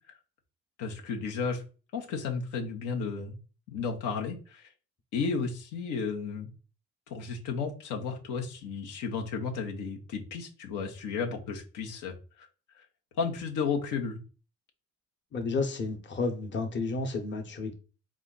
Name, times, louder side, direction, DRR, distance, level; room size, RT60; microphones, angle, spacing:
voice 1, 0.8-1.6 1.9-3.3 3.7-4.7 5.1-6.5 7.1-12.5 12.8-12.9 13.2-14.2, left 5 dB, 85° left, 2 dB, 1.0 m, -33 dB
voice 2, 15.3-17.7, left 3 dB, 40° left, 4 dB, 1.0 m, -31 dB
4.1 x 2.5 x 3.9 m, 0.35 s
cardioid pair, 95°, 29 cm